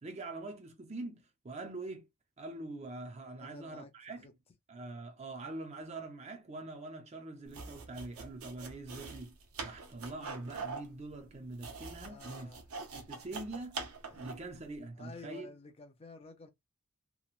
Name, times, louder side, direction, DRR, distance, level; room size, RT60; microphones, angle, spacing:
voice 1, 0.0-2.1 2.4-4.3 4.7-9.4 9.6-12.5 12.9-13.8 14.2-15.5, right 2 dB, 30° right, 0.5 m, -44 dB
voice 2, 3.3-3.9 4.2-4.3 12.1-12.7 14.1-14.3 15.0-16.5, left 3 dB, 25° left, 0.4 m, -51 dB
sound 1, 7.5-14.5, right 4 dB, 80° right, 0.6 m, -44 dB
3.0 x 2.0 x 2.4 m
head